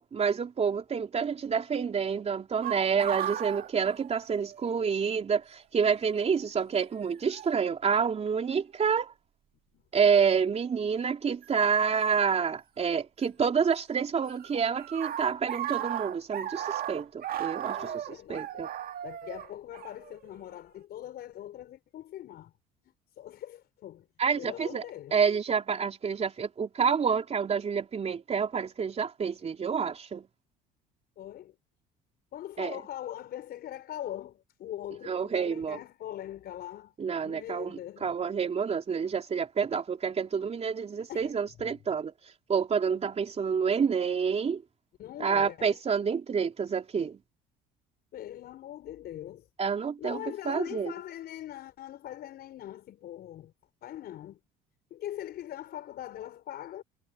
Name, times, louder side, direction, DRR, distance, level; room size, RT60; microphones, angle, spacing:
voice 1, 0.0-9.1 9.9-17.9 18.3-18.7 24.2-24.8 25.1-30.2 32.6-32.8 35.1-35.8 37.0-42.1 42.5-44.6 45.2-47.2 49.6-50.2 50.5-50.9, right 6 dB, 35° right, 3.5 m, -28 dB
sound 1, 2.6-4.7 5.0-5.1 6.1-6.3 7.3-7.6 8.3-8.8 11.4-11.5 12.9-13.8 14.0-20.6, right 11 dB, 55° right, 1.9 m, -36 dB
voice 2, 17.8-18.7 19.0-22.5 22.9-24.1 24.4-25.2 31.2-31.5 32.3-36.9 37.2-38.2 41.1-41.4 45.0-45.8 48.1-49.5 50.0-53.5 53.8-54.4 54.9-56.8, left 12 dB, 60° left, 5.2 m, -41 dB
supercardioid pair, 90°, 18 cm